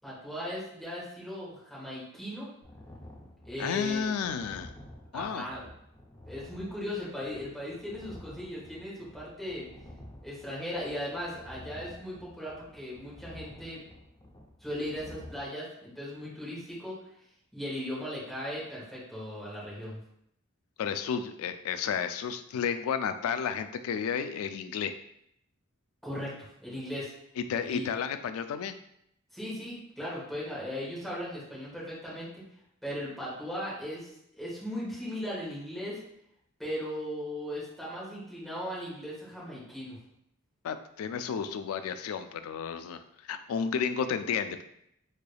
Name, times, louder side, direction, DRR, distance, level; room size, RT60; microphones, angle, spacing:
voice 1, 0.0-2.5 3.4-4.1 5.1-5.7 6.3-9.7 10.2-13.8 14.6-17.0 17.5-20.0 26.0-27.1 27.7-27.9 29.3-32.5 32.8-34.1 34.4-36.0 36.6-40.0, left 1 dB, ahead, -8 dB, 1.4 m, -37 dB
sound 1, 2.6-15.4, left 1 dB, 15° left, 0.5 m, -50 dB
voice 2, 3.6-4.7 5.1-5.5 20.8-24.9 27.5-28.7 40.6-44.6, left 7 dB, 80° left, 12 dB, 0.3 m, -32 dB
3.7 x 3.3 x 2.3 m, 0.74 s
head